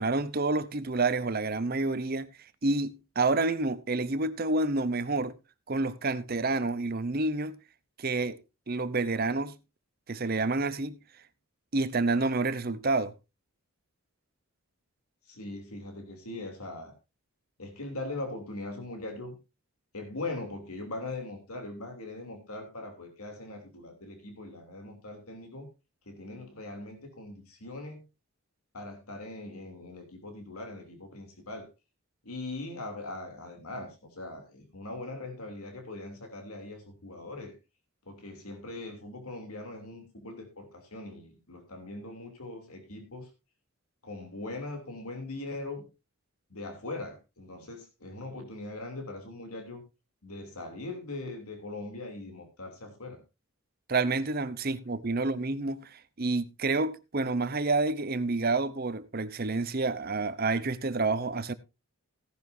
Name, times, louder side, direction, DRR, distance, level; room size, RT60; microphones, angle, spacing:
voice 1, 0.0-2.3 2.6-5.3 5.7-7.6 8.0-8.4 8.7-9.6 10.1-11.0 11.7-13.1 53.9-61.5, right 3 dB, 40° right, 0.7 m, -29 dB
voice 2, 15.3-16.9 17.6-19.4 19.9-25.7 26.1-28.0 28.7-31.7 32.2-37.5 38.1-43.3 44.0-45.8 46.5-49.8 50.2-53.2, left 2 dB, 80° left, 3.0 m, -41 dB
16.5 x 11.0 x 2.7 m
head